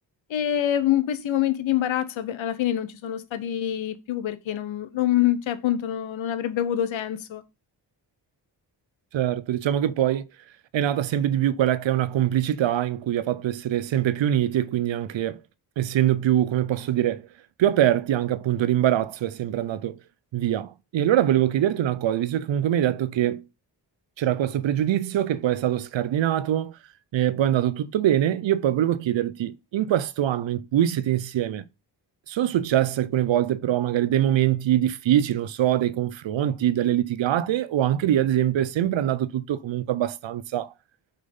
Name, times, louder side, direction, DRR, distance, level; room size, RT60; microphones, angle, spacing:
voice 1, 0.3-7.4, left 11 dB, 85° left, 1.0 m, -25 dB
voice 2, 9.1-10.2 10.7-15.4 15.8-17.3 17.6-20.0 20.3-23.4 24.2-26.7 27.1-31.6 32.3-40.7, right 11 dB, 75° right, 0.7 m, -23 dB
6.6 x 3.9 x 5.4 m
cardioid pair, 65°, 46 cm